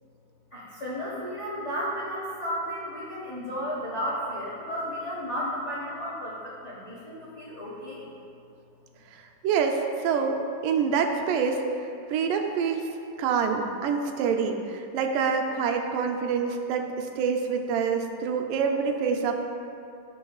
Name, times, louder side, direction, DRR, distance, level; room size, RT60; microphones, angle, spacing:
voice 1, 0.5-8.1, equal, 65° left, -8 dB, 0.7 m, -33 dB
voice 2, 9.4-11.7 12.1-12.8 13.2-19.3, right 6 dB, 90° right, 4 dB, 2.3 m, -26 dB
16.5 x 5.6 x 2.4 m, 2.5 s
omnidirectional pair, 3.7 m